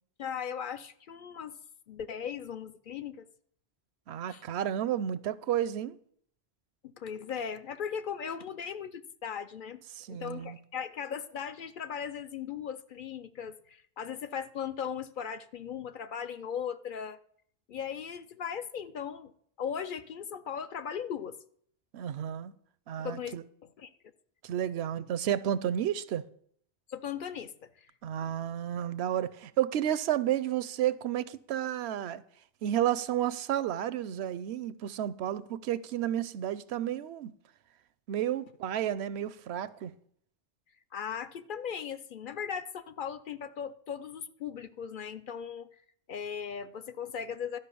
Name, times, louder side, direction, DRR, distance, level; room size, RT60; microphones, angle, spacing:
voice 1, 0.2-1.6 1.9-3.2 4.3-4.4 6.8-9.8 10.1-17.2 17.7-19.3 19.6-21.4 23.0-23.4 23.6-23.9 26.9-27.9 40.9-45.7 46.1-47.6, left 7 dB, 60° left, 0.7 m, -38 dB
voice 2, 4.1-6.0 9.9-10.6 21.9-22.5 22.9-23.4 24.4-26.2 28.0-32.2 32.6-37.3 38.1-39.9, right 11 dB, 80° right, 0.8 m, -31 dB
12.0 x 5.5 x 6.8 m
omnidirectional pair, 1.1 m